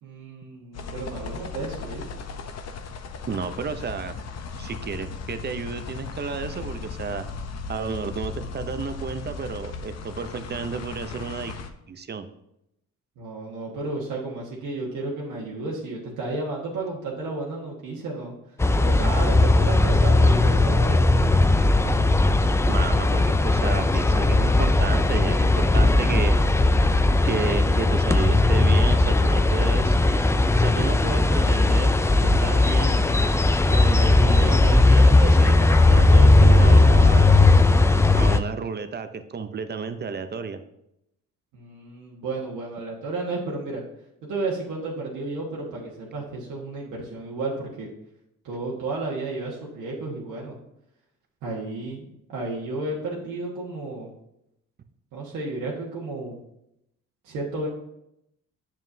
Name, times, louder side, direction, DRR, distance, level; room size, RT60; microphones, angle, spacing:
voice 1, 0.0-2.1 13.2-18.3 18.8-21.0 41.5-43.8 44.2-47.9 48.4-50.6 51.4-54.1 55.1-56.4 57.2-57.7, right 2 dB, 85° right, -4 dB, 1.5 m, -32 dB
sound 1, 0.7-11.7, left 5 dB, 60° left, 0.8 m, -36 dB
voice 2, 3.3-4.1 4.6-7.2 7.7-11.6 11.9-12.3 22.7-26.3 27.2-30.0 30.6-33.0 33.7-37.3 38.1-40.6, right 5 dB, 35° right, 10 dB, 0.6 m, -32 dB
sound 2, 18.6-38.4, left 2 dB, 10° left, 0.3 m, -18 dB
7.5 x 7.2 x 2.7 m, 0.81 s
cardioid pair, 90°, 30 cm